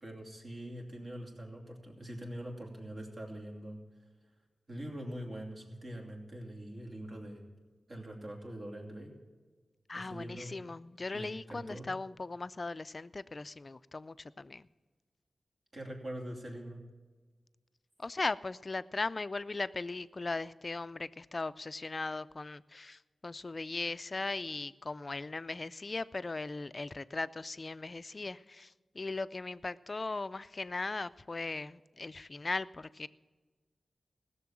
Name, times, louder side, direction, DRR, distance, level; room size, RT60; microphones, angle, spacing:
voice 1, 0.0-3.8 4.7-7.4 7.9-9.1 9.9-10.7 11.1-11.9 15.7-16.8, right 1 dB, 50° right, 0 dB, 2.9 m, -43 dB
voice 2, 9.9-14.7 18.0-33.1, left 3 dB, 40° left, 16 dB, 0.4 m, -38 dB
16.0 x 6.8 x 7.3 m, 1.4 s
cardioid pair, 60°, 0 cm